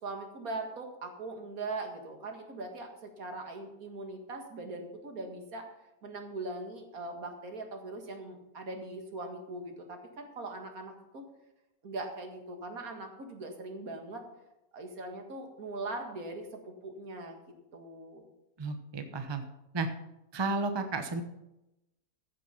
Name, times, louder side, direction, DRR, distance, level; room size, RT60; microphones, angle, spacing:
voice 1, 0.0-5.7 6.0-11.2 11.8-14.3 14.7-17.4 17.7-18.3, right 2 dB, 65° right, 4 dB, 2.2 m, -41 dB
voice 2, 18.6-19.4 19.7-19.9 20.3-21.2, right 3 dB, 20° right, 7 dB, 0.7 m, -32 dB
15.0 x 6.8 x 5.7 m, 0.92 s
omnidirectional pair, 1.7 m